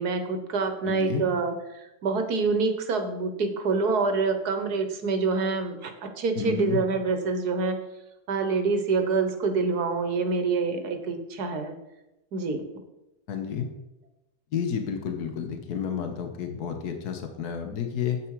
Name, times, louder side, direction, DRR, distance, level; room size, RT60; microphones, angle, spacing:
voice 1, 0.0-7.8 8.3-11.8 12.3-12.6, right 4 dB, 75° right, 7 dB, 1.7 m, -26 dB
voice 2, 0.8-1.2 6.4-6.8 13.3-13.7 14.5-18.2, left 7 dB, 75° left, 5 dB, 1.7 m, -30 dB
9.3 x 8.4 x 4.8 m, 0.94 s
omnidirectional pair, 1.7 m